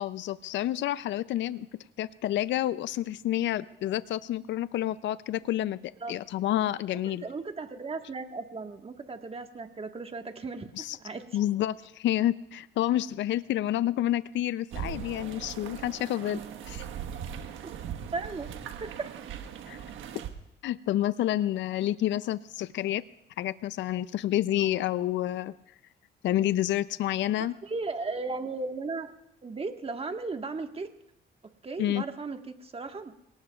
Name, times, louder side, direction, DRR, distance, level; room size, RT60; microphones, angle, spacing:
voice 1, 0.0-1.7 2.0-7.2 10.8-11.0 11.3-16.4 16.7-16.9 19.7-19.8 20.6-23.0 23.4-25.5 26.2-27.6 31.8-32.0, left 13 dB, 65° left, 16 dB, 0.4 m, -29 dB
voice 2, 7.2-10.7 11.0-11.2 17.6-17.7 18.1-18.5 18.8-19.1 27.6-29.1 29.4-30.9 31.6-33.1, right 3 dB, 30° right, 5 dB, 1.4 m, -36 dB
sound 1, 14.7-20.3, right 8 dB, 85° right, 1.3 m, -39 dB
27.5 x 18.5 x 2.4 m, 0.83 s
cardioid pair, 90°, 20 cm